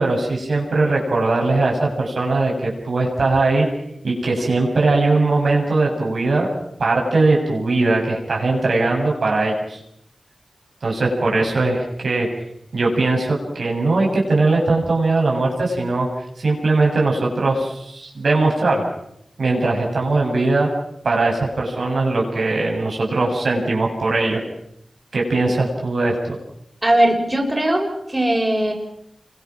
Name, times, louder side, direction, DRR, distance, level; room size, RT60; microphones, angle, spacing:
voice 1, 0.0-3.7 4.0-6.5 6.8-9.8 10.8-12.3 12.7-16.1 16.4-18.8 19.4-20.7 21.0-24.4 25.1-26.4, right 3 dB, 80° right, -1 dB, 7.9 m, -20 dB
voice 2, 26.8-28.7, right 1 dB, 25° right, 1 dB, 6.7 m, -19 dB
28.0 x 24.5 x 6.2 m, 0.73 s
cardioid pair, 55°, 0 cm